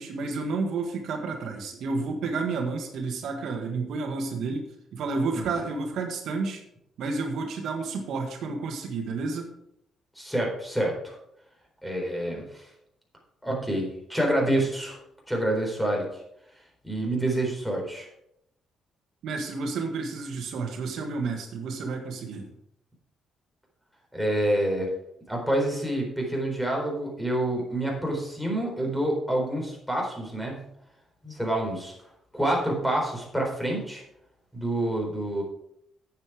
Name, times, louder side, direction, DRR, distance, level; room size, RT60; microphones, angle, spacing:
voice 1, 0.0-6.6 7.0-9.5 19.2-22.5, right 4 dB, 75° right, 4 dB, 1.5 m, -31 dB
voice 2, 10.2-11.2 11.8-12.6 13.4-15.0 15.3-16.2 16.8-18.1 24.1-24.9 25.3-30.6 31.2-31.9 32.3-34.0 34.5-35.4, right 1 dB, 5° left, 0 dB, 4.1 m, -27 dB
9.4 x 7.7 x 4.8 m, 0.76 s
cardioid pair, 90°, 0 cm